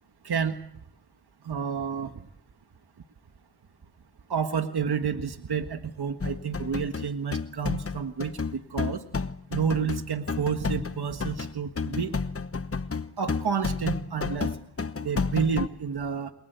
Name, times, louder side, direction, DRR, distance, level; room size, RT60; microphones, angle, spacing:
voice 1, 0.2-0.6 1.4-2.1 4.3-9.0 9.5-12.2 13.2-14.5 15.0-16.3, right 6 dB, 85° right, 7 dB, 1.6 m, -30 dB
sound 1, 6.2-15.7, left 4 dB, 35° left, 1.1 m, -31 dB
28.5 x 22.5 x 8.1 m, 0.70 s
cardioid pair, 55°, 38 cm